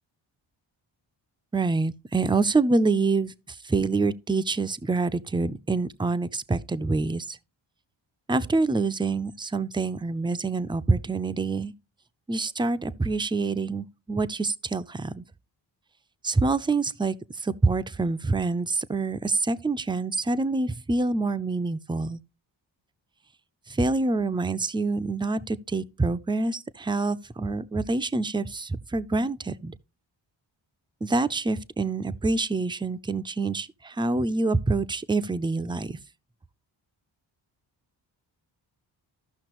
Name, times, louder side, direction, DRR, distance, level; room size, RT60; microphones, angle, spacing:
voice 1, 1.5-7.4 8.3-11.7 12.3-15.2 16.2-22.2 23.7-29.7 31.0-36.0, right 3 dB, 10° right, 0.5 m, -26 dB
13.5 x 5.8 x 3.0 m
cardioid pair, 55°, 48 cm